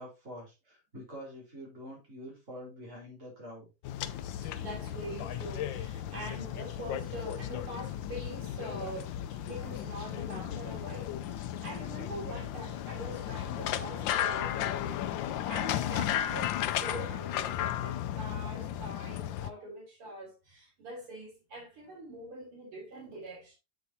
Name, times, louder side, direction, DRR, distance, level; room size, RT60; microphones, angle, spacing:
voice 1, 0.0-3.7, equal, 35° right, 4.5 m, -46 dB
sound 1, 3.8-19.5, left 11 dB, 70° left, 1.2 m, -35 dB
sound 2, 4.0-17.7, left 4 dB, 30° left, 2.5 m, -55 dB
voice 2, 4.2-9.1 9.4-23.6, right 1 dB, 85° right, 4.0 m, -44 dB
7.6 x 7.1 x 2.8 m
omnidirectional pair, 2.4 m